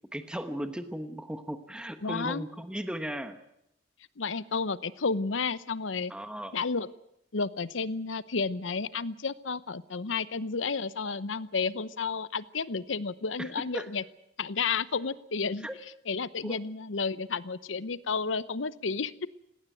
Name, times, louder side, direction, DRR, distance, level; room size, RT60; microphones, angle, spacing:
voice 1, 0.1-3.4 6.1-6.5 13.4-13.9 15.6-15.7 16.4-16.6, equal, 5° right, 8 dB, 1.1 m, -36 dB
voice 2, 2.0-2.4 4.2-6.1 6.5-6.9 7.3-14.0 14.4-15.7 16.1-19.3, left 4 dB, 85° left, 17 dB, 0.8 m, -31 dB
18.5 x 18.0 x 9.1 m, 0.78 s
head